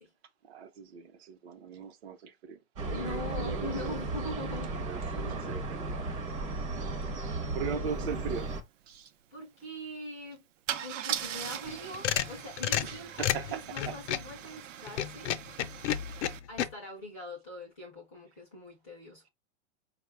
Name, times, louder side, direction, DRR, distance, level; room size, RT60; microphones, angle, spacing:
voice 1, 0.4-2.6 2.9-4.1 4.7-6.0 7.5-8.5 8.9-9.1 12.8-14.0, right 6 dB, 55° right, 0.8 m, -39 dB
voice 2, 2.8-4.7 7.6-7.9 9.3-10.4 10.8-15.3 16.5-19.3, left 1 dB, 10° left, 0.4 m, -42 dB
sound 1, 2.8-8.6, right 2 dB, 25° right, 0.7 m, -35 dB
Car / Engine starting / Idling, 8.1-8.2 8.4-8.7 10.7-16.4, right 10 dB, 90° right, 0.7 m, -40 dB
sound 2, 11.7-14.3 14.9-16.7, left 11 dB, 70° left, 0.6 m, -31 dB
4.7 x 2.3 x 3.2 m
supercardioid pair, 180°, 36 cm